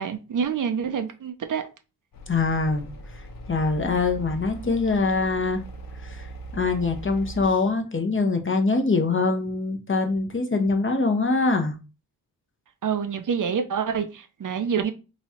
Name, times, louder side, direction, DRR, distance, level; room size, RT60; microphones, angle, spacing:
voice 1, 0.0-1.6 12.8-14.9, right 7 dB, 55° right, 0.6 m, -27 dB
sound 1, 2.1-7.5, right 1 dB, 60° left, 0.7 m, -39 dB
voice 2, 2.3-2.9 3.5-5.6 6.0-6.3 6.5-11.8, left 3 dB, 30° left, 0.8 m, -23 dB
3.0 x 2.4 x 4.1 m
cardioid pair, 60°, 39 cm